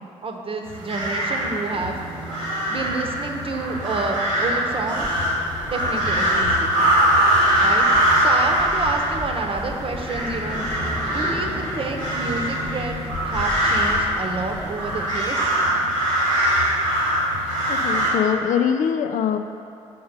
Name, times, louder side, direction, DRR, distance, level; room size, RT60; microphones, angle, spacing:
voice 1, 0.0-2.0 2.7-5.2 5.7-6.9 7.6-7.8 8.2-10.6 11.0-15.4, right 3 dB, 35° right, 3 dB, 0.9 m, -29 dB
sound 1, 0.7-18.1, right 1 dB, 90° right, 1.3 m, -22 dB
sound 2, 1.7-15.8, left 1 dB, 20° left, 1.2 m, -38 dB
voice 2, 17.7-19.4, left 8 dB, 50° left, 8 dB, 0.5 m, -22 dB
6.9 x 5.1 x 5.3 m, 2.6 s
figure-of-eight pair, 45°, 16 cm